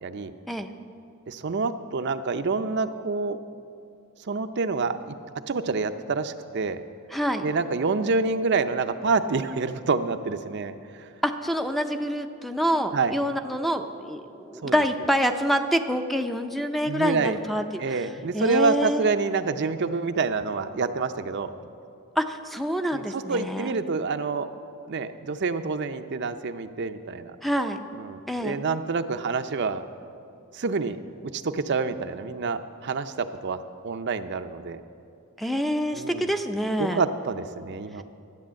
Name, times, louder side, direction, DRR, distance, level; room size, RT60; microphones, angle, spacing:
voice 1, 0.0-0.3 1.3-3.4 4.3-5.1 5.5-6.8 7.4-10.7 12.9-13.1 14.6-14.7 16.9-17.4 17.8-21.5 22.9-24.5 24.8-27.4 28.0-29.8 30.5-31.0 31.3-34.8 35.9-36.2 36.8-38.0, right 4 dB, 55° right, 9 dB, 0.5 m, -27 dB
voice 2, 7.1-7.5 11.2-18.1 18.3-19.1 22.2-23.7 27.4-27.8 28.3-28.6 35.4-37.0, equal, ahead, 6 dB, 0.5 m, -26 dB
13.0 x 9.0 x 7.5 m, 2.5 s
head